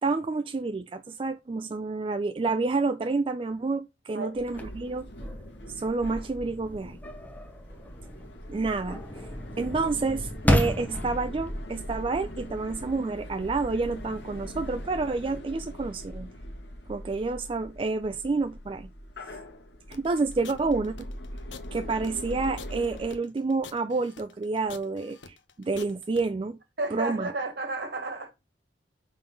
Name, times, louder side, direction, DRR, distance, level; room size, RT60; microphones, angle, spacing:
voice 1, 0.0-5.1 5.7-7.0 8.5-9.3 9.6-16.3 16.9-18.9 19.9-20.9 21.7-26.6 26.9-27.3, right 3 dB, 30° right, 0.3 m, -29 dB
sound 1, 4.3-23.1, equal, 65° left, 1.6 m, -41 dB
sound 2, 4.4-15.4, equal, 10° left, 0.9 m, -34 dB
sound 3, 19.9-26.2, left 5 dB, 80° left, 0.8 m, -46 dB
voice 2, 26.8-28.3, right 2 dB, 60° right, 1.5 m, -32 dB
5.8 x 3.9 x 5.1 m
head